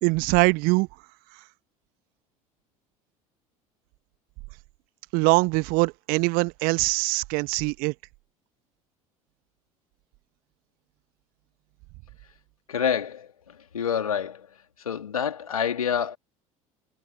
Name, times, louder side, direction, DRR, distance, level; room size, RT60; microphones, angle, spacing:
voice 1, 0.0-0.9 5.1-7.9, right 26 dB, 55° right, 1.4 m, -22 dB
voice 2, 12.7-14.5 14.8-16.2, left 8 dB, 80° left, 3.1 m, -28 dB
figure-of-eight pair, 65°, 18 cm